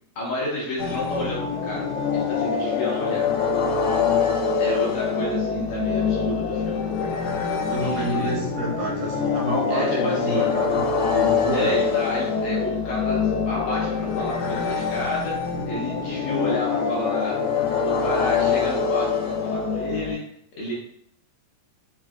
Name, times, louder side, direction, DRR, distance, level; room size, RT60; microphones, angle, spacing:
voice 1, 0.2-1.9 2.1-3.2 4.6-6.9 7.8-8.3 9.7-10.5 11.5-15.4 15.7-17.4 17.8-20.2 20.6-20.7, left 1 dB, 75° left, -5 dB, 1.7 m, -30 dB
sound 1, 0.8-20.1, left 6 dB, 90° left, 2.2 m, -24 dB
voice 2, 7.7-10.8 11.1-11.8, right 2 dB, 80° right, -3 dB, 2.5 m, -28 dB
5.5 x 2.5 x 2.3 m, 0.73 s
omnidirectional pair, 3.8 m